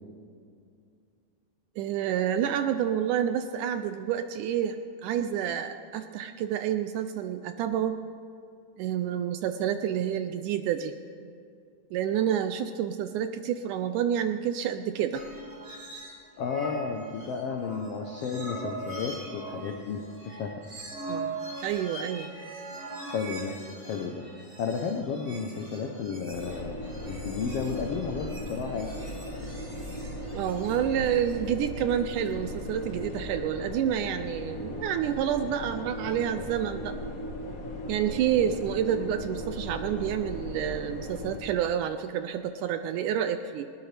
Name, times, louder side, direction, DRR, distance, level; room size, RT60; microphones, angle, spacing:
voice 1, 1.8-8.0 8.8-10.9 11.9-15.2 21.1-21.4 21.6-22.3 30.3-37.0 37.9-43.7, right 9 dB, 80° right, 9 dB, 1.9 m, -29 dB
sound 1, 15.1-16.1 16.4-33.1, right 2 dB, 25° right, 1.8 m, -42 dB
voice 2, 16.4-20.7 21.1-21.2 23.0-26.8 27.1-28.9, left 5 dB, 90° left, 3 dB, 1.3 m, -33 dB
sound 2, 26.3-41.4, left 1 dB, 65° left, 0.8 m, -37 dB
19.5 x 19.5 x 3.3 m, 2.4 s
omnidirectional pair, 4.0 m